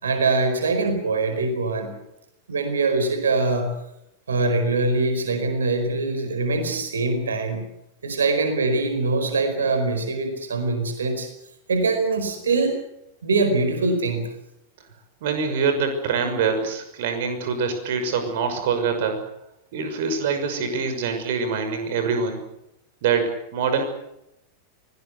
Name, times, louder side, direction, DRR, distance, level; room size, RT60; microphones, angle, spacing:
voice 1, 0.0-1.9 2.5-3.7 4.3-7.6 8.0-11.3 11.7-12.8 13.2-14.3, right 3 dB, 70° right, 8 dB, 4.8 m, -23 dB
voice 2, 15.2-19.2 19.7-22.4 23.0-23.8, right 5 dB, 55° right, 7 dB, 6.0 m, -24 dB
24.0 x 19.0 x 8.3 m, 0.83 s
figure-of-eight pair, 90°, 0 cm